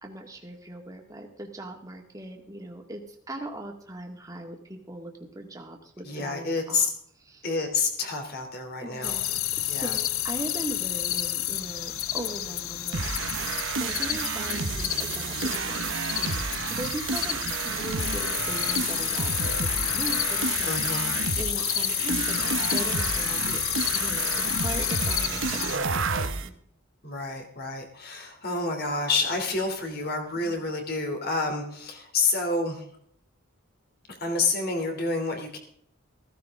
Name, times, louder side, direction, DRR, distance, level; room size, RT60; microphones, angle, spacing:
voice 1, 0.0-6.9 7.3-7.5 8.8-13.5 13.8-20.7 21.4-26.5 30.4-30.7, right 1 dB, 15° right, 2 dB, 2.0 m, -40 dB
voice 2, 6.0-6.9 7.4-9.2 9.7-10.0 20.6-21.1 25.7-26.0 27.0-32.8 34.1-35.6, left 3 dB, 45° left, 4 dB, 3.0 m, -29 dB
sound 1, 9.0-25.8, left 13 dB, 80° left, 0.7 m, -30 dB
sound 2, 12.9-26.5, right 5 dB, 65° right, 1.0 m, -30 dB
15.5 x 14.5 x 3.7 m, 0.66 s
head